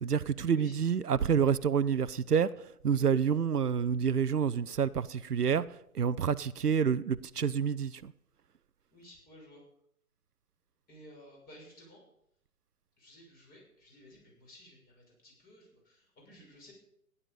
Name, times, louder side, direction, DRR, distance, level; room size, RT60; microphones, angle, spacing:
voice 1, 0.0-2.5 2.8-5.6 5.9-8.1, right 7 dB, 85° right, 0.7 m, -28 dB
voice 2, 8.9-9.6 10.9-12.0 13.0-16.7, equal, 20° left, 6.5 m, -55 dB
15.0 x 11.0 x 5.3 m
figure-of-eight pair, 125°, 45 cm